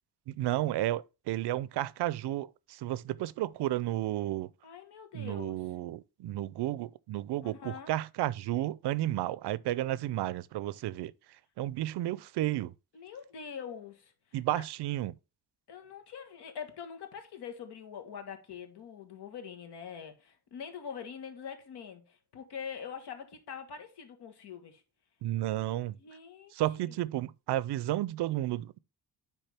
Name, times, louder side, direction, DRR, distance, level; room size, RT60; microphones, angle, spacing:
voice 1, 0.3-4.5 5.1-11.1 11.6-12.7 14.3-15.1 25.2-26.0 26.5-28.8, right 14 dB, 90° right, 0.5 m, -32 dB
voice 2, 4.6-5.7 7.4-7.9 12.9-14.7 15.7-24.8 26.0-26.5 26.9-27.0, left 7 dB, 80° left, 1.6 m, -44 dB
10.0 x 3.6 x 3.4 m
wide cardioid pair, 160°, 39 cm